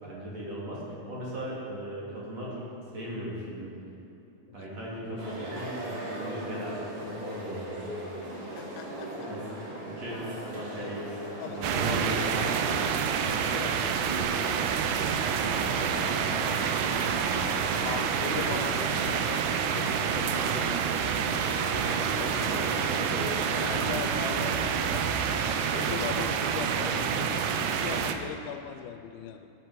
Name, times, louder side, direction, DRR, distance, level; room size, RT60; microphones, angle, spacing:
voice 1, 0.0-2.7 2.9-3.7 4.5-8.0 9.2-11.1 11.4-12.3 13.2-13.5 21.8-23.0 27.1-27.3, equal, 50° right, -6 dB, 2.9 m, -38 dB
sound 1, 5.2-23.8, right 1 dB, 70° right, 4.2 m, -39 dB
voice 2, 8.3-9.3 10.4-10.9 11.4-12.9 13.2-15.6 16.0-16.1 17.8-19.4 19.7-21.2 21.7-22.3 22.7-27.4 27.8-29.5, left 8 dB, 80° left, 6 dB, 2.3 m, -40 dB
sound 2, 11.6-28.1, right 7 dB, 85° right, 1.8 m, -28 dB
16.5 x 8.1 x 4.6 m, 2.9 s
omnidirectional pair, 4.4 m